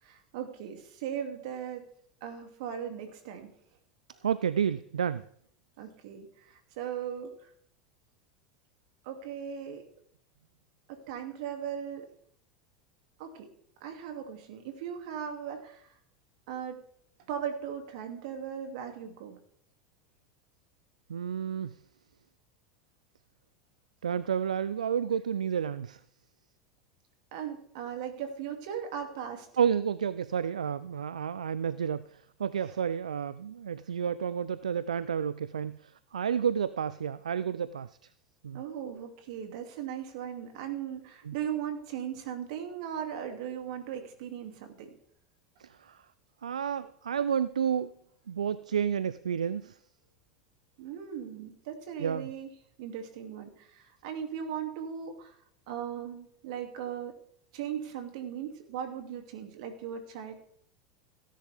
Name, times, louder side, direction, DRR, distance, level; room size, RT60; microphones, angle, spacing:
voice 1, 0.0-1.9 2.2-3.5 5.8-7.5 9.0-9.9 10.9-12.1 13.2-13.5 13.8-15.9 16.5-16.8 17.3-19.4 27.3-29.5 32.6-32.7 38.5-44.9 50.8-52.5 52.8-55.3 55.7-57.2 57.5-60.3, right 8 dB, 65° right, 5 dB, 2.6 m, -38 dB
voice 2, 4.2-5.2 21.1-21.8 24.0-26.0 29.6-37.9 38.4-38.6 41.3-41.4 45.6-46.0 46.4-47.9 48.3-49.8 52.0-52.3, right 8 dB, 85° right, 17 dB, 0.4 m, -30 dB
17.0 x 10.5 x 3.6 m, 0.64 s
hypercardioid pair, 85°, 4 cm